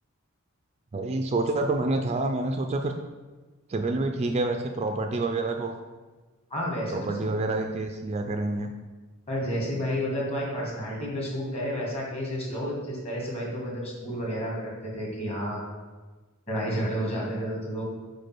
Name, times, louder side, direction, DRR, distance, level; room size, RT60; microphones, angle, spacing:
voice 1, 0.9-2.9 3.7-5.8 6.9-8.7 17.1-17.4, right 2 dB, 30° right, 5 dB, 0.4 m, -28 dB
voice 2, 6.5-7.3 9.3-15.6 16.5-17.8, equal, 30° left, -3 dB, 1.9 m, -31 dB
5.2 x 4.5 x 6.0 m, 1.3 s
head